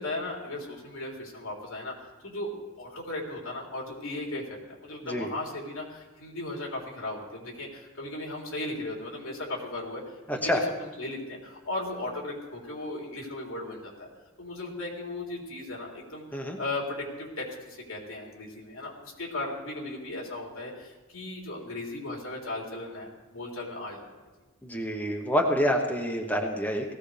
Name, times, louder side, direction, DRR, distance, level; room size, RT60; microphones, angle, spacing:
voice 1, 0.0-1.9 2.2-2.5 2.8-10.0 10.3-14.1 14.4-16.2 16.6-24.0, left 2 dB, 85° left, -2 dB, 3.6 m, -36 dB
voice 2, 10.3-10.6 16.3-16.6 24.6-26.9, equal, 10° left, 1 dB, 1.2 m, -27 dB
19.0 x 15.5 x 3.4 m, 1.2 s
head